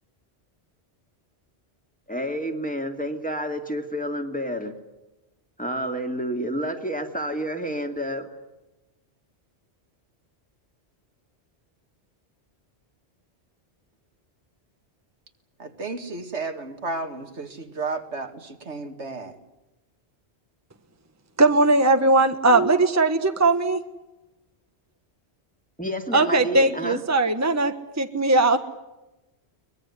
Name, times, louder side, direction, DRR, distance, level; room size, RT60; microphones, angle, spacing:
voice 1, 2.1-4.7 5.6-8.3 25.8-27.0, equal, 5° left, 4 dB, 2.3 m, -29 dB
voice 2, 15.6-19.3, right 3 dB, 85° right, 6 dB, 2.4 m, -33 dB
voice 3, 21.4-23.8 26.1-28.6, right 2 dB, 15° right, 7 dB, 1.2 m, -19 dB
23.0 x 20.5 x 9.8 m, 1.0 s
omnidirectional pair, 1.1 m